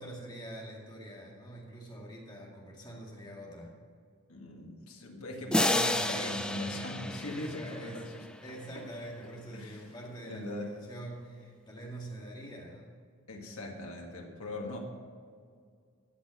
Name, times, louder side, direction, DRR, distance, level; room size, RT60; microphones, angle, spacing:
voice 1, 0.0-3.7 7.5-8.0 8.4-12.9, right 1 dB, 20° left, -2 dB, 2.1 m, -45 dB
voice 2, 4.3-8.3 8.7-8.8 9.5-9.8 10.2-10.7 13.3-14.8, left 1 dB, 85° left, 0 dB, 2.0 m, -39 dB
sound 1, 5.5-8.3, left 1 dB, 5° left, 0.4 m, -31 dB
15.0 x 6.1 x 6.4 m, 2.1 s
head